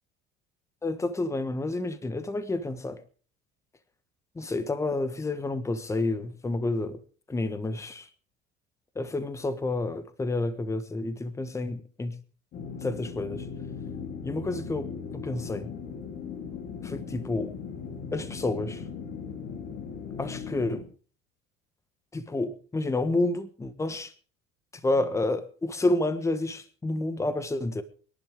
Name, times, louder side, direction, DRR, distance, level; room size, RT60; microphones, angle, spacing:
voice 1, 0.8-3.0 4.4-7.0 7.3-8.1 8.9-12.1 12.8-13.4 14.2-14.9 15.2-15.7 16.8-17.5 18.1-18.8 20.2-20.8 22.1-24.1 24.8-27.8, left 2 dB, 15° left, 1.3 m, -29 dB
sound 1, 12.5-20.8, left 6 dB, 50° left, 3.4 m, -38 dB
24.0 x 11.0 x 3.7 m
cardioid pair, 120°, 21 cm